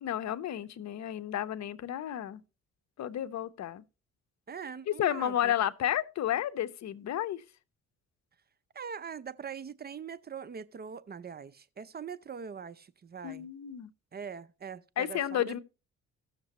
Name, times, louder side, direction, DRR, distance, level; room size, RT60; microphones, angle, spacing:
voice 1, 0.0-2.4 3.0-3.8 4.9-7.4 13.2-13.9 15.0-15.6, left 11 dB, 60° left, 0.8 m, -32 dB
voice 2, 4.5-5.5 8.7-13.5 14.1-15.6, right 6 dB, 35° right, 0.6 m, -42 dB
16.5 x 6.6 x 2.9 m
cardioid pair, 90°, 30 cm